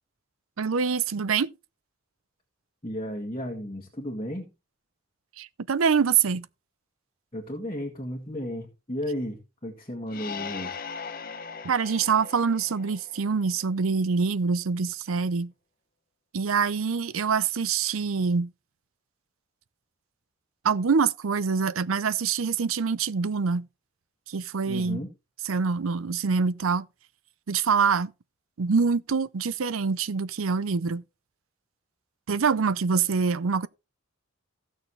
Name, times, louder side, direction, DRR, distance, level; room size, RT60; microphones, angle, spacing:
voice 1, 0.6-1.5 5.4-6.5 11.6-15.5 16.3-18.5 20.6-23.7 24.3-25.0 25.5-26.9 27.5-28.1 28.6-31.0 32.3-33.7, right 5 dB, 75° right, 0.6 m, -25 dB
voice 2, 2.8-4.5 7.3-10.8 24.7-25.1, equal, 25° left, 1.8 m, -34 dB
sound 1, 10.1-13.7, left 6 dB, 45° left, 0.9 m, -39 dB
16.0 x 6.5 x 3.2 m
head